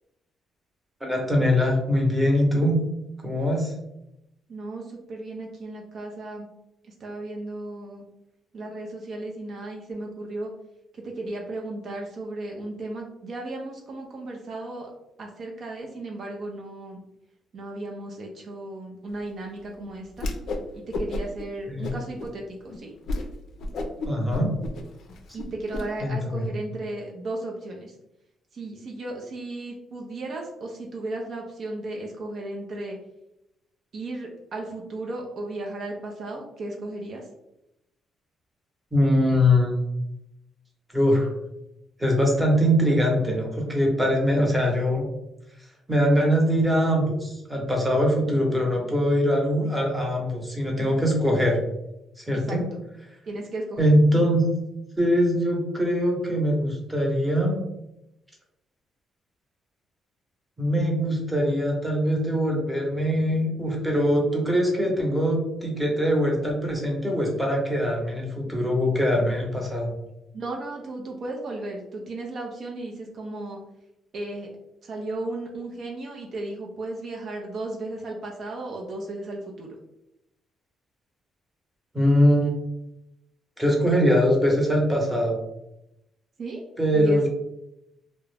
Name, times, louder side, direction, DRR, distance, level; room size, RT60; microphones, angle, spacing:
voice 1, 1.0-2.8 3.2-3.7 21.7-21.9 24.0-24.5 26.0-26.5 38.9-39.8 40.9-41.3 42.0-45.0 45.9-51.6 52.2-52.6 53.8-54.4 55.0-57.6 60.6-69.9 81.9-82.5 83.6-85.4 86.8-87.3, equal, 10° right, -1 dB, 0.8 m, -22 dB
voice 2, 4.5-6.5 7.0-8.1 8.5-10.5 10.9-14.9 15.2-17.0 17.5-20.3 20.7-22.9 25.3-27.9 28.5-33.0 33.9-37.3 52.5-52.6 53.2-53.9 70.3-73.6 74.1-74.5 74.8-79.8 86.4-86.6 86.9-87.3, right 2 dB, 55° right, 0 dB, 0.5 m, -35 dB
Whoosh swoosh swish, 20.1-20.6 20.9-21.4 21.8-22.3 22.7-22.8 23.1-23.3 23.6-25.8, left 2 dB, 65° left, 0.4 m, -31 dB
2.3 x 2.0 x 3.2 m, 0.87 s
cardioid pair, 90°, 0 cm